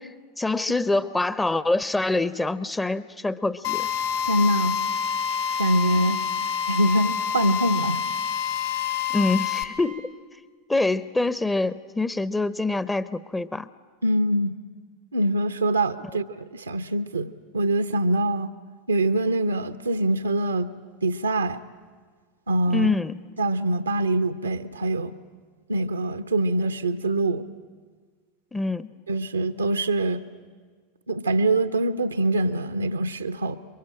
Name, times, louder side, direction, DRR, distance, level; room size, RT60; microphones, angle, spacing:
voice 1, 0.0-3.9 6.0-6.2 9.1-10.1 10.7-13.7 22.7-23.2 28.5-28.9, left 2 dB, 10° left, 16 dB, 0.8 m, -25 dB
Drill, 3.6-9.6, left 7 dB, 60° left, 2.3 m, -27 dB
voice 2, 4.3-4.8 5.6-6.2 6.7-8.0 14.0-14.5 15.1-18.5 18.9-20.7 21.0-21.6 22.5-22.9 23.4-25.1 25.7-27.4 29.1-30.2 31.1-33.6, right 1 dB, 80° right, 9 dB, 0.9 m, -24 dB
28.0 x 23.5 x 8.8 m, 1.5 s
figure-of-eight pair, 85°, 0 cm